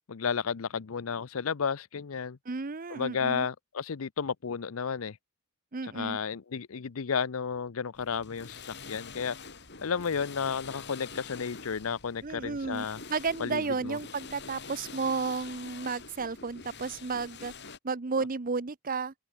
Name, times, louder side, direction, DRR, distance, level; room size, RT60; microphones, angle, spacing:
voice 1, 0.1-2.4 2.9-5.2 5.8-9.4 9.8-13.0 13.4-14.0, left 6 dB, 75° left, 0.6 m, -32 dB
voice 2, 2.5-3.5 5.7-6.2 12.2-17.5 17.8-19.1, right 4 dB, 40° right, 0.7 m, -33 dB
sound 1, 7.9-17.8, left 4 dB, 55° left, 7.6 m, -46 dB
open air
head